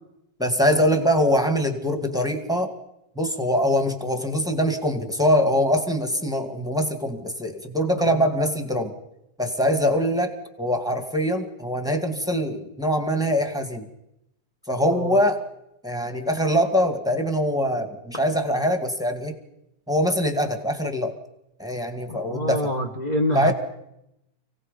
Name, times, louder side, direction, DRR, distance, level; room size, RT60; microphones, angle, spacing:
voice 1, 0.4-2.7 3.1-8.9 9.4-13.8 14.7-15.4 15.8-19.4 19.9-21.1 21.6-22.7 23.3-23.5, equal, ahead, 5 dB, 1.3 m, -23 dB
voice 2, 22.1-23.5, left 1 dB, 45° left, 5 dB, 0.5 m, -26 dB
30.0 x 18.0 x 5.3 m, 0.82 s
omnidirectional pair, 3.7 m